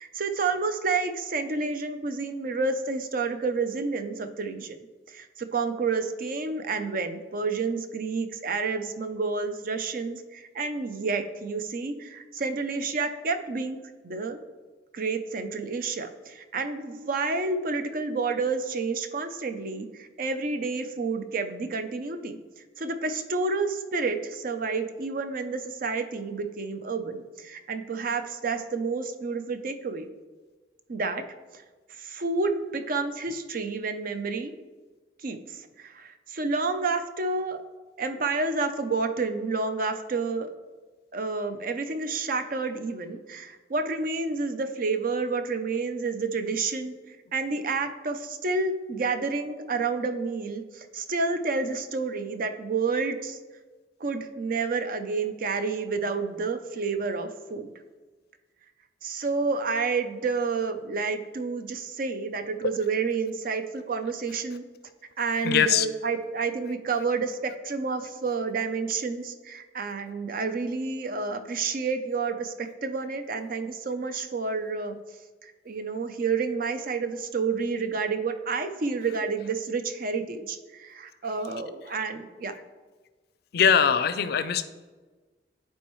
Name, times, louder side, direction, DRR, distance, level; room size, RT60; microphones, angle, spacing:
voice 1, 0.0-4.8 5.1-13.8 14.0-14.4 14.9-22.4 22.8-30.1 30.9-31.2 32.0-34.5 35.2-37.6 38.0-40.5 41.1-53.4 54.0-57.7 59.0-64.6 65.2-75.0 75.4-82.5, right 4 dB, 50° right, 8 dB, 0.5 m, -29 dB
voice 2, 65.4-65.9 83.5-84.6, left 7 dB, 60° left, 12 dB, 0.4 m, -21 dB
10.5 x 4.4 x 3.1 m, 1.3 s
head